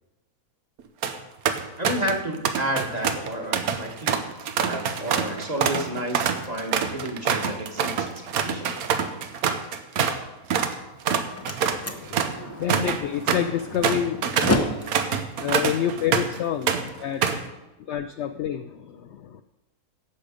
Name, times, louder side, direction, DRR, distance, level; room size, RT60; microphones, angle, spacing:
sound 1, 0.8-1.2 1.5-2.2 2.4-10.2 10.5-10.7 11.0-16.4 16.7-17.5, right 7 dB, 80° right, 1.3 m, -26 dB
voice 1, 1.8-4.2 4.6-8.7, right 1 dB, 30° right, 1 dB, 1.5 m, -31 dB
Slam, 10.9-16.9, left 1 dB, 15° left, 0.7 m, -32 dB
voice 2, 11.7-14.7 15.4-17.3 17.8-19.4, left 9 dB, 65° left, 9 dB, 0.7 m, -29 dB
17.0 x 6.7 x 5.1 m, 1.0 s
omnidirectional pair, 1.6 m